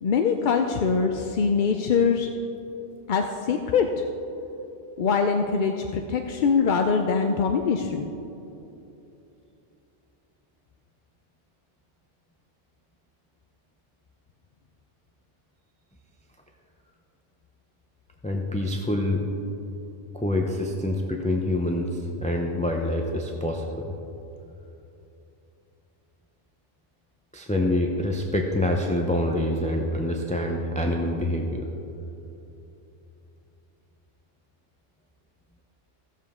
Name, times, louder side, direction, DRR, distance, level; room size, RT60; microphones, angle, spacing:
voice 1, 0.0-2.3 3.1-4.0 5.0-8.1, left 5 dB, 55° left, 4 dB, 0.5 m, -23 dB
voice 2, 18.2-19.2 20.1-23.9 27.3-31.7, left 1 dB, 10° left, 1 dB, 0.4 m, -26 dB
16.0 x 7.3 x 3.6 m, 2.9 s
omnidirectional pair, 1.2 m